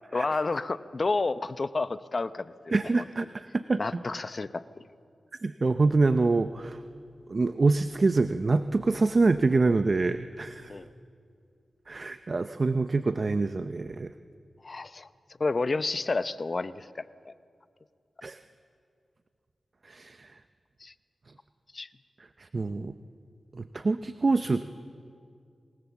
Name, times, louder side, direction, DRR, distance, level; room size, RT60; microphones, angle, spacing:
voice 1, 0.1-2.7 3.8-4.8 10.7-10.9 14.6-15.1 15.4-17.3 20.8-20.9 21.7-21.9, left 3 dB, 45° left, 14 dB, 0.7 m, -30 dB
voice 2, 2.7-4.0 5.4-6.8 7.3-10.7 11.9-14.1 18.2-18.4 19.8-20.4 22.4-22.9 23.5-24.6, right 3 dB, 50° right, 10 dB, 0.6 m, -26 dB
26.0 x 19.0 x 7.1 m, 2.3 s
cardioid pair, 65°, 0 cm